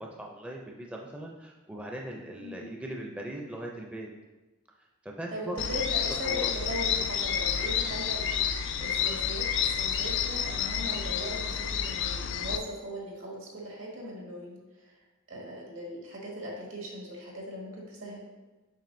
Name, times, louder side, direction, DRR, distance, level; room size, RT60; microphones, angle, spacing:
voice 1, 0.0-4.1 5.0-5.8 6.2-6.5, right 1 dB, 5° right, -1 dB, 0.4 m, -39 dB
voice 2, 2.4-2.7 5.3-14.6 14.9-15.0 15.3-18.2, equal, 80° right, -2 dB, 1.7 m, -39 dB
sound 1, 5.6-12.6, left 8 dB, 65° left, 0.4 m, -30 dB
7.4 x 5.5 x 2.6 m, 1.2 s
head